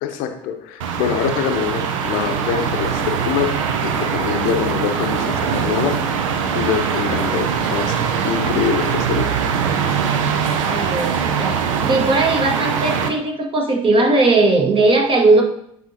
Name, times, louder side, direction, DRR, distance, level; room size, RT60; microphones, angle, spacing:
voice 1, 0.0-3.5 3.8-6.0 6.5-8.0 8.2-9.4 10.2-10.3, left 8 dB, 60° left, 6 dB, 0.8 m, -24 dB
sound 1, 0.8-13.1, right 7 dB, 70° right, 0.6 m, -22 dB
voice 2, 10.6-15.4, right 2 dB, 30° right, 2 dB, 1.4 m, -18 dB
9.1 x 4.2 x 2.8 m, 0.71 s
figure-of-eight pair, 60°, 17 cm